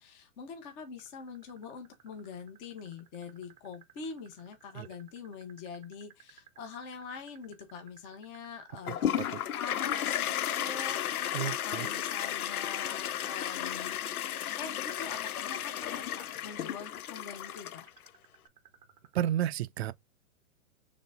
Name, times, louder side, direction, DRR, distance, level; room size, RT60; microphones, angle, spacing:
voice 1, 0.0-14.3 14.6-17.9, left 5 dB, 25° left, 0.9 m, -44 dB
sound 1, 1.0-12.2 14.6-19.2, right 11 dB, 15° right, 0.7 m, -58 dB
Toilet flush, 8.9-18.1, left 11 dB, 90° left, 0.6 m, -34 dB
voice 2, 11.3-11.9 19.1-19.9, right 11 dB, 50° right, 0.5 m, -31 dB
4.0 x 3.4 x 3.9 m
hypercardioid pair, 145°, 43 cm